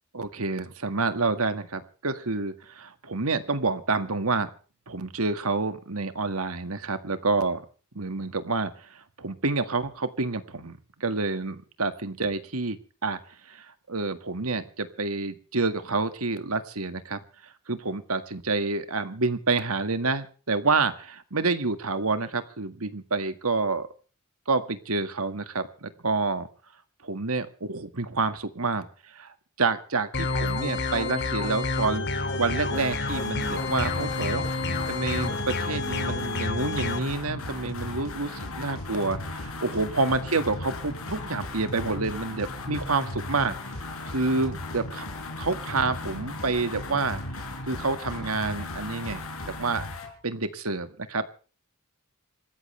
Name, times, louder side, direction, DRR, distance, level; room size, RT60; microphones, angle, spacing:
voice 1, 0.1-4.5 4.9-7.7 8.0-13.2 13.5-23.9 24.5-26.5 27.0-34.4 34.9-43.5 44.1-45.1 45.4-47.2 47.6-49.9 50.2-51.3, right 3 dB, 80° right, 10 dB, 1.9 m, -28 dB
sound 1, 30.1-37.0, left 3 dB, 55° left, 2.8 m, -29 dB
sound 2, 32.7-50.1, left 2 dB, 75° left, 4.9 m, -36 dB
27.0 x 14.5 x 3.3 m, 0.38 s
head